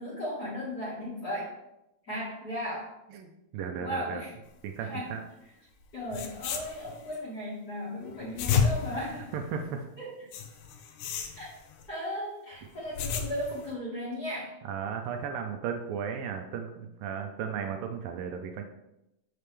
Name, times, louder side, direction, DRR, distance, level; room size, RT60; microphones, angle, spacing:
voice 1, 0.0-1.5 2.0-2.9 3.8-4.3 4.8-5.1 5.9-9.3 10.0-10.3 11.4-11.5 11.9-14.5, left 1 dB, 45° left, -8 dB, 1.2 m, -36 dB
voice 2, 3.1-4.2 4.6-5.2 8.9-9.1 9.3-9.9 14.6-18.6, right 7 dB, 80° right, 4 dB, 2.1 m, -35 dB
sound 1, 5.8-5.9 6.1-7.2 8.1-9.8 10.3-11.9 12.6-13.7, left 6 dB, 85° left, 1.9 m, -32 dB
7.0 x 6.6 x 3.3 m, 0.89 s
omnidirectional pair, 4.4 m